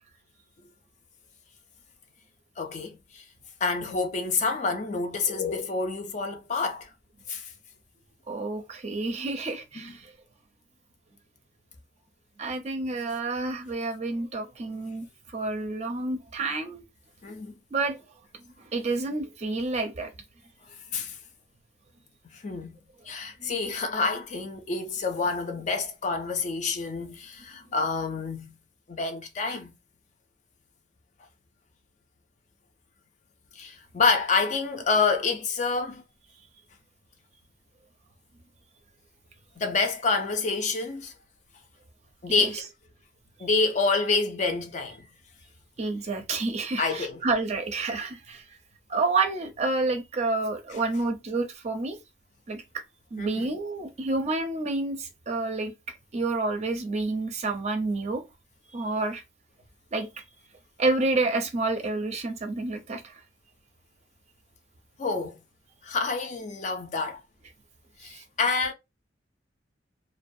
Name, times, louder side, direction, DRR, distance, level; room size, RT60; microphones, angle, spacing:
voice 1, 2.6-3.2 3.6-6.9 7.3-7.5 9.8-9.9 17.2-17.6 20.9-21.2 22.3-22.7 23.1-28.5 28.9-29.7 33.6-36.0 39.6-41.1 42.2-42.7 43.4-45.0 46.8-47.2 53.2-53.5 65.0-65.4 65.8-67.2 68.0-68.7, left 4 dB, 40° left, 0.4 m, -28 dB
voice 2, 8.3-10.1 12.4-15.1 15.3-16.8 17.7-18.0 18.6-20.1 23.4-23.6 42.3-42.6 45.8-48.4 48.9-52.0 52.5-52.8 53.1-55.7 56.1-58.2 58.7-59.2 59.9-60.1 60.8-63.2 68.2-68.3, right 3 dB, 40° right, 0.5 m, -29 dB
2.3 x 2.1 x 2.6 m
head